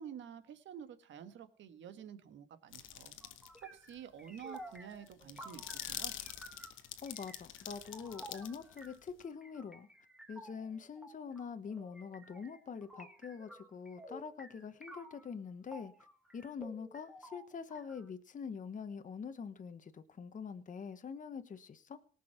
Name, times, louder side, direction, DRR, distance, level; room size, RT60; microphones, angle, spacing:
voice 1, 0.0-3.1 3.6-6.1, right 8 dB, 70° right, 1.5 m, -49 dB
sound 1, 2.7-3.6 3.9-4.0 4.4-9.2, left 11 dB, 80° left, 1.0 m, -45 dB
sound 2, 3.2-15.3 15.7-18.1, right 1 dB, 5° right, 2.2 m, -54 dB
voice 2, 7.0-9.9 10.3-15.9 16.3-22.0, left 6 dB, 40° left, 1.1 m, -45 dB
18.5 x 6.1 x 5.9 m
cardioid pair, 90°, 20 cm